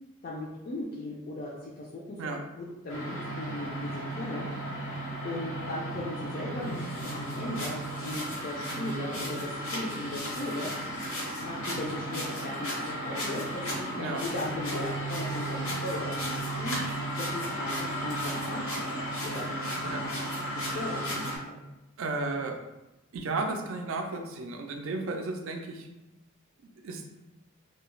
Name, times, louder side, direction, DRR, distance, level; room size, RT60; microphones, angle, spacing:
voice 1, 0.2-2.3 2.6-6.8 7.1-10.7 11.4-16.8 17.2-18.9 19.2-21.6, left 2 dB, 45° left, -4 dB, 0.3 m, -38 dB
sound 1, 2.9-21.4, right 1 dB, 90° left, 0.9 m, -34 dB
voice 2, 8.7-9.5 13.9-14.2 19.8-20.1 22.0-22.6 23.1-25.9 26.6-27.1, right 3 dB, 70° right, 4 dB, 0.4 m, -34 dB
2.3 x 2.2 x 3.0 m, 0.98 s
head